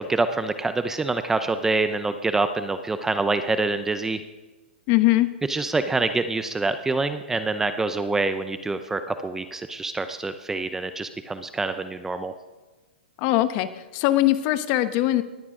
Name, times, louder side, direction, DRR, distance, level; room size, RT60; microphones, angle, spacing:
voice 1, 0.0-4.2 5.5-12.3, right 3 dB, 5° right, 10 dB, 0.6 m, -26 dB
voice 2, 4.9-5.3 13.2-15.2, left 15 dB, 35° left, 12 dB, 1.0 m, -21 dB
19.5 x 14.0 x 3.7 m, 1.2 s
hypercardioid pair, 140°, 6 cm